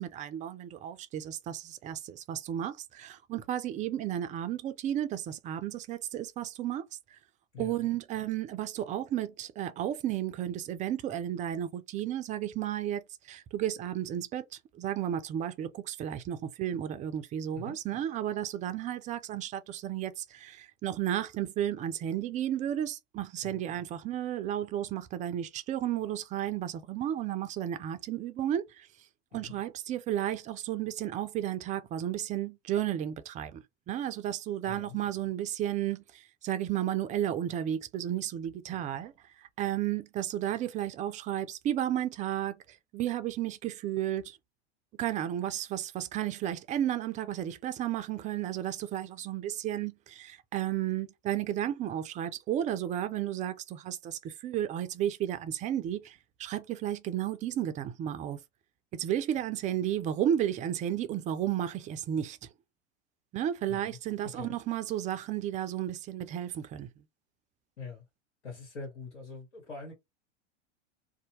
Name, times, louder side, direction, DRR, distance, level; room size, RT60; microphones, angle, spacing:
voice 1, 0.0-6.8 7.6-13.0 13.3-14.4 14.7-28.9 29.3-39.1 39.6-42.6 42.9-44.4 45.0-58.4 58.9-62.4 63.3-66.9, right 11 dB, 20° right, 0.4 m, -33 dB
voice 2, 7.5-7.9 17.5-17.8 23.4-23.6 29.3-29.6 34.7-35.0 63.7-64.0 64.3-64.6 67.8-68.0 68.4-69.9, left 4 dB, 75° left, 1.5 m, -44 dB
2.7 x 2.1 x 2.8 m
hypercardioid pair, 90°, 35 cm